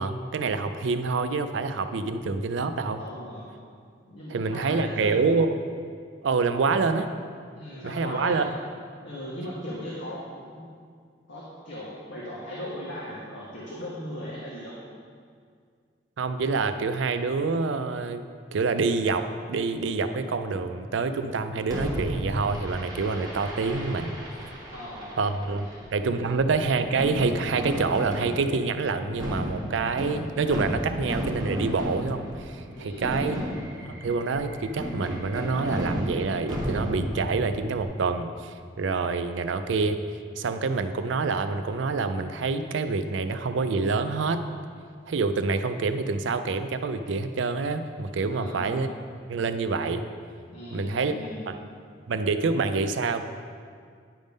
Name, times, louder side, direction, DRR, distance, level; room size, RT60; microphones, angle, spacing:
voice 1, 0.0-3.0 4.3-5.5 6.2-7.1 7.8-8.5 16.2-18.2 18.5-24.2 25.2-33.4 33.8-40.0 40.4-44.4 45.1-48.9 49.3-50.0 50.7-51.1 51.5-51.6 52.1-53.2, right 4 dB, 80° right, 9 dB, 0.4 m, -27 dB
voice 2, 3.0-3.5 4.1-5.2 6.6-6.9 7.5-8.5 9.0-10.7 11.3-14.8 24.7-25.2 25.6-25.9 26.2-26.3 32.7-33.5 48.3-48.8 50.5-51.5, equal, 80° left, -6 dB, 1.2 m, -38 dB
Fireworks, 21.7-37.8, equal, 20° right, 1.3 m, -34 dB
10.0 x 3.6 x 5.2 m, 2.1 s
head